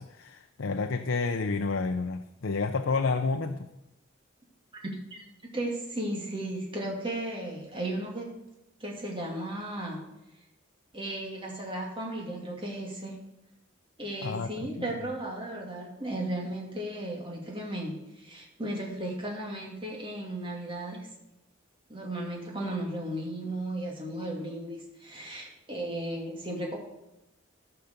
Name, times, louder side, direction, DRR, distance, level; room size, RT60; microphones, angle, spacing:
voice 1, 0.0-3.7 14.2-14.9, left 4 dB, 70° left, 7 dB, 0.6 m, -30 dB
voice 2, 5.5-8.3 8.8-10.1 10.9-13.2 14.0-21.1 21.9-26.8, right 1 dB, 25° right, -1 dB, 2.5 m, -35 dB
14.0 x 5.8 x 6.7 m, 0.92 s
head